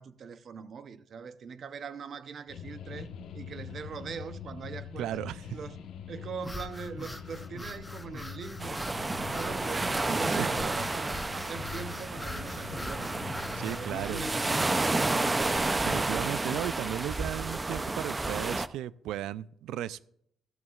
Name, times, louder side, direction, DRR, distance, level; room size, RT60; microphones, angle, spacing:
voice 1, 0.0-5.2 5.5-5.8 6.1-8.8 9.3-13.2 13.6-14.9, right 6 dB, 55° right, 0.7 m, -42 dB
sound 1, 2.5-16.2, left 7 dB, 75° left, 1.2 m, -43 dB
voice 2, 5.0-5.4 10.4-10.5 13.5-14.2 15.7-20.1, right 12 dB, 85° right, 0.3 m, -35 dB
sound 2, 6.4-16.8, left 1 dB, 10° left, 0.9 m, -43 dB
sound 3, 8.6-18.7, right 2 dB, 20° right, 0.5 m, -31 dB
14.0 x 14.0 x 2.4 m
cardioid pair, 90°, 0 cm